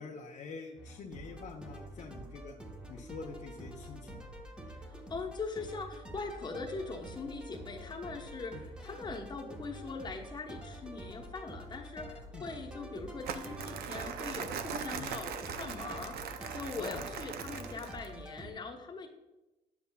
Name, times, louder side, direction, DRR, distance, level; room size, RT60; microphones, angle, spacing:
voice 1, 0.0-2.5 2.9-4.2 8.5-8.6 12.3-12.4 15.0-15.1 16.8-17.0, left 4 dB, 45° left, 0 dB, 0.7 m, -45 dB
sound 1, 0.8-18.5, right 1 dB, 5° right, 0.9 m, -47 dB
voice 2, 4.8-16.2 16.5-19.1, left 4 dB, 25° left, 1 dB, 0.9 m, -41 dB
Crumpling crinkling, 13.2-18.1, right 7 dB, 65° right, 0.5 m, -40 dB
9.5 x 7.1 x 2.3 m, 1.0 s
cardioid pair, 110°, 17 cm